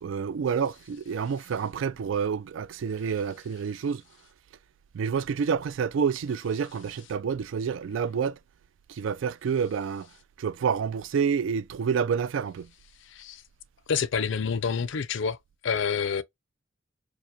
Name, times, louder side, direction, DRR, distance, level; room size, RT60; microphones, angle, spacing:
voice 1, 0.0-4.0 4.9-8.4 8.9-10.1 10.4-12.7, right 6 dB, 70° right, 0.3 m, -28 dB
voice 2, 13.9-15.4 15.6-16.2, left 6 dB, 65° left, 0.4 m, -27 dB
4.6 x 2.1 x 2.7 m
head